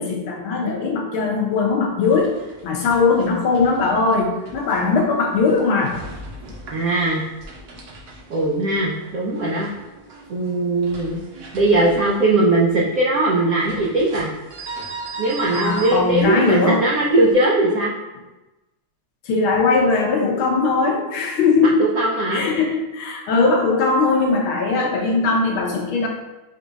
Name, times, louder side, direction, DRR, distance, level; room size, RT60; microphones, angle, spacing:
voice 1, 0.0-2.3 2.6-6.0 15.5-16.8 19.3-21.9 22.3-26.1, left 4 dB, 75° left, 0 dB, 1.6 m, -19 dB
sound 1, 2.0-17.3, right 2 dB, 60° right, 1.1 m, -39 dB
voice 2, 6.7-7.2 8.3-9.7 10.3-11.2 11.5-14.3 15.2-17.9 21.8-22.4, right 2 dB, 85° right, -3 dB, 0.7 m, -19 dB
5.2 x 2.4 x 3.9 m, 1.1 s
omnidirectional pair, 2.4 m